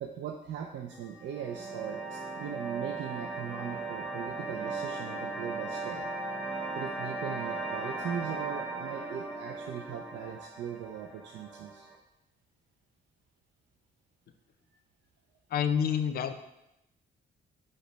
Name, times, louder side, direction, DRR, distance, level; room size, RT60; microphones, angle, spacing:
voice 1, 0.0-6.1 6.8-11.9, right 8 dB, 70° right, 2 dB, 0.4 m, -39 dB
sound 1, 0.9-12.0, right 3 dB, 5° right, 0.5 m, -38 dB
sound 2, 1.5-10.3, right 1 dB, 45° right, 0.8 m, -48 dB
voice 2, 15.5-16.3, left 8 dB, 55° left, 9 dB, 0.4 m, -28 dB
5.1 x 2.1 x 3.9 m, 0.88 s
cardioid pair, 90°, 20 cm